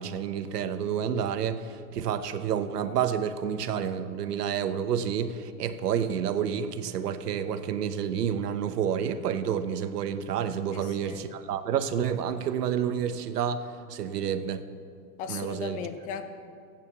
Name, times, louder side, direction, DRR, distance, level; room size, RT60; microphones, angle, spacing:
voice 1, 0.0-14.6 15.3-15.8, right 8 dB, 80° right, 10 dB, 1.0 m, -29 dB
voice 2, 10.7-11.2 15.2-16.2, left 7 dB, 20° left, 9 dB, 0.5 m, -37 dB
12.5 x 9.0 x 7.1 m, 2.3 s
hypercardioid pair, 145°, 46 cm